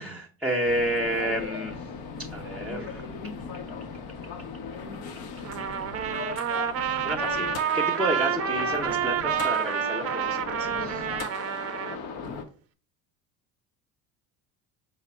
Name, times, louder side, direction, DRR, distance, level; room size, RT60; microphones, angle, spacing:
voice 1, 0.0-2.0 2.3-3.1 7.0-11.1, right 1 dB, 5° right, -1 dB, 0.6 m, -31 dB
sound 1, 0.7-12.4, left 5 dB, 70° left, 0.8 m, -37 dB
Trumpet, 5.4-12.0, right 8 dB, 40° right, 0.4 m, -28 dB
4.9 x 2.1 x 4.3 m, 0.39 s
supercardioid pair, 95°, 38 cm